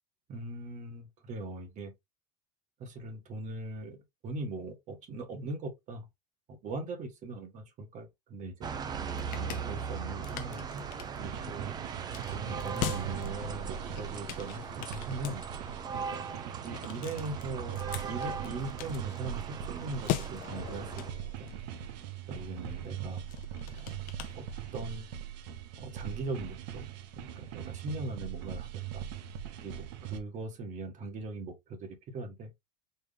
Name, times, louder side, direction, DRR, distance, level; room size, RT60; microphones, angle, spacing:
voice 1, 0.3-1.9 2.8-6.0 6.5-8.7 9.3-10.8 11.1-11.7 12.3-15.4 16.1-16.3 16.6-21.1 21.4-21.5 22.3-23.2 23.7-24.0 24.3-24.5 24.7-25.1 25.8-26.9 27.2-29.1 29.6-32.5, right 2 dB, 35° right, 1.4 m, -40 dB
sound 1, 8.6-21.1, right 6 dB, 20° right, 0.5 m, -39 dB
sound 2, 8.8-25.0, left 13 dB, 45° left, 0.5 m, -43 dB
sound 3, 11.2-30.2, right 10 dB, 90° right, 0.8 m, -41 dB
4.5 x 2.9 x 3.4 m
cardioid pair, 160°, 21 cm